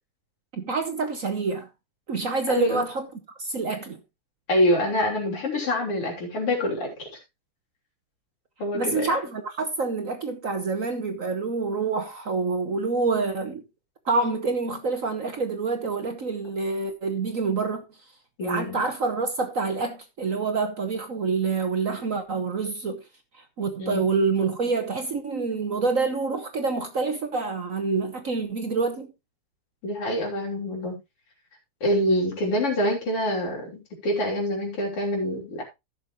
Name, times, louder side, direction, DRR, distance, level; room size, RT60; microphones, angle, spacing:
voice 1, 0.5-1.7 2.1-3.1 3.4-4.0 8.7-13.6 14.0-17.8 18.4-23.0 23.6-29.1, right 4 dB, 50° right, 1.1 m, -27 dB
voice 2, 2.5-2.8 4.5-7.1 8.6-9.0 18.4-18.8 23.8-24.0 29.8-31.0 31.8-35.6, left 1 dB, 90° left, 4.3 m, -26 dB
15.0 x 6.6 x 3.0 m
omnidirectional pair, 2.4 m